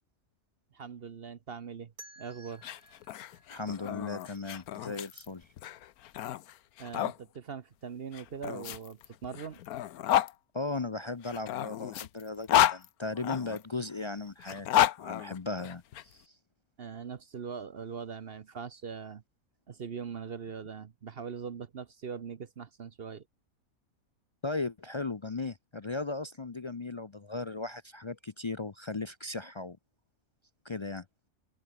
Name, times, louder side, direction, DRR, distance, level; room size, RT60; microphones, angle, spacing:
voice 1, 0.7-2.6 6.8-9.6 16.8-19.2 19.7-23.2, right 6 dB, 50° right, 0.9 m, -41 dB
sound 1, 2.0-4.8, right 2 dB, 85° right, 6.4 m, -55 dB
sound 2, 2.5-7.2 8.1-10.3 11.2-13.6 14.4-16.0, left 12 dB, 85° left, 1.2 m, -31 dB
voice 2, 3.5-5.5 10.5-16.4 24.4-29.8 30.6-31.1, left 3 dB, 45° left, 0.3 m, -37 dB
open air
omnidirectional pair, 1.5 m